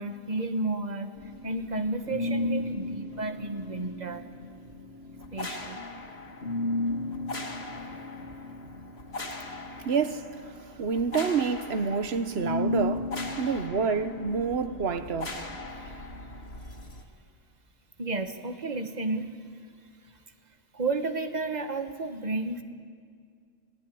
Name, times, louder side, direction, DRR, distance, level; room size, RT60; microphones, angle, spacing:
voice 1, 0.0-4.3 5.3-5.8 7.7-8.0 8.6-8.7 15.8-16.0 18.0-19.3 20.7-22.6, right 3 dB, 45° right, 1.6 m, -32 dB
sound 1, 1.2-17.0, left 2 dB, 80° left, 2.4 m, -35 dB
voice 2, 9.8-10.3 10.6-13.1 13.4-15.4, right 5 dB, 90° right, 1.3 m, -28 dB
28.5 x 18.5 x 9.4 m
omnidirectional pair, 1.0 m